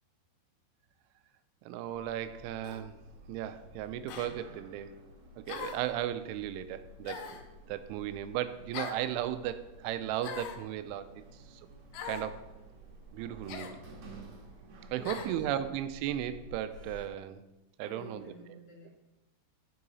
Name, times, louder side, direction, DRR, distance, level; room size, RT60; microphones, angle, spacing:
voice 1, 1.7-3.0 3.3-5.0 5.4-7.2 7.7-11.2 11.5-11.6 12.0-12.4 13.1-13.8 14.9-17.4 17.8-18.3, right 11 dB, 90° right, 11 dB, 3.0 m, -35 dB
Sliding door, 1.8-17.1, right 1 dB, 60° right, 1.7 m, -52 dB
sound 1, 2.6-2.9 4.1-4.3 5.5-5.9 7.1-7.5 8.7-9.0 10.2-10.6 11.9-12.3 13.5-13.8 15.0-15.3, left 7 dB, 85° left, 2.3 m, -41 dB
voice 2, 14.9-15.5 17.8-18.9, left 2 dB, 50° left, -4 dB, 2.6 m, -51 dB
14.0 x 4.7 x 4.1 m, 0.99 s
omnidirectional pair, 5.4 m